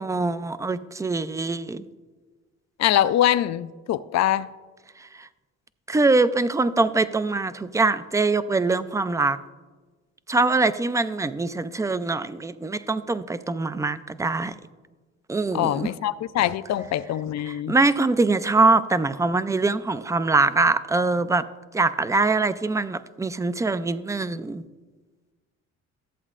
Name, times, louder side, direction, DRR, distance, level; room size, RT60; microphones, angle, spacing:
voice 1, 0.0-1.8 5.2-5.3 5.9-9.4 10.3-14.5 15.3-15.9 17.5-21.4 21.7-24.6, right 3 dB, 10° right, 14 dB, 0.3 m, -23 dB
voice 2, 2.8-4.5 15.5-17.8, left 12 dB, 60° left, 15 dB, 0.4 m, -23 dB
13.5 x 7.9 x 2.5 m, 1.3 s
cardioid pair, 90°, 30 cm